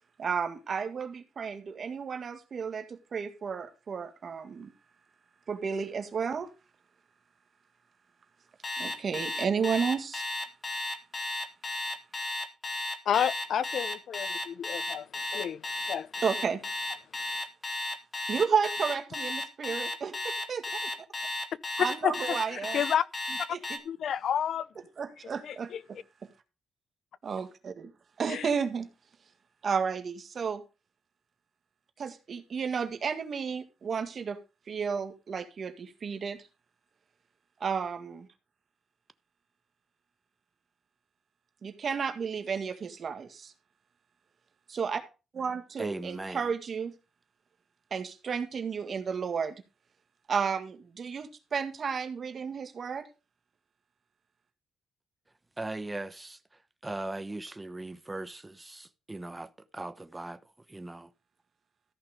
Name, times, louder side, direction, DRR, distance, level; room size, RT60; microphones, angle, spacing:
voice 1, 0.2-4.7 5.5-6.5 8.8-10.2 16.2-16.6 18.3-20.9 21.8-22.8 23.5-23.6 25.0-26.0 27.2-27.9 28.2-28.9 29.6-30.6 32.0-34.4 34.7-36.4 37.6-38.3 41.6-43.5 44.7-45.0 45.3-46.9 47.9-49.5 50.3-53.0, right 6 dB, 50° right, 1.8 m, -32 dB
Alarm, 8.6-23.8, left 2 dB, 30° left, 2.0 m, -34 dB
voice 2, 13.1-15.1 15.3-16.1 22.0-23.1 23.8-24.7 25.4-25.8 28.3-28.5, left 9 dB, 70° left, 0.6 m, -30 dB
voice 3, 45.8-46.4 55.6-56.4 56.8-60.4 60.7-61.1, right 2 dB, 15° right, 1.0 m, -39 dB
14.0 x 5.8 x 5.1 m
cardioid pair, 85°, 0 cm